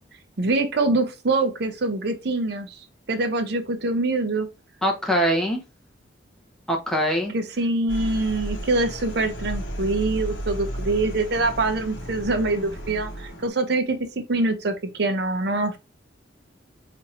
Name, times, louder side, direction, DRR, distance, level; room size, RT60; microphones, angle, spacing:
voice 1, 0.4-4.5 7.3-14.0 14.3-15.8, right 2 dB, 55° right, 0.6 m, -24 dB
voice 2, 4.8-5.6 6.7-7.3, equal, 5° left, 0.8 m, -22 dB
sound 1, 7.9-13.5, right 1 dB, 65° left, 0.9 m, -33 dB
2.8 x 2.5 x 4.1 m
head